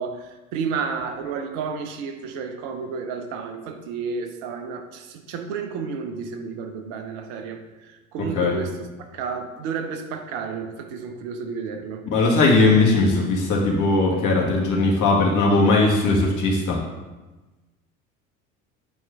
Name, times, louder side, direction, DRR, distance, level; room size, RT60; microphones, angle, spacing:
voice 1, 0.0-7.6 8.1-12.1, right 5 dB, 60° right, 6 dB, 1.0 m, -31 dB
voice 2, 12.1-16.8, left 3 dB, 45° left, -1 dB, 1.9 m, -19 dB
8.3 x 4.5 x 3.6 m, 1.2 s
figure-of-eight pair, 65°, 42 cm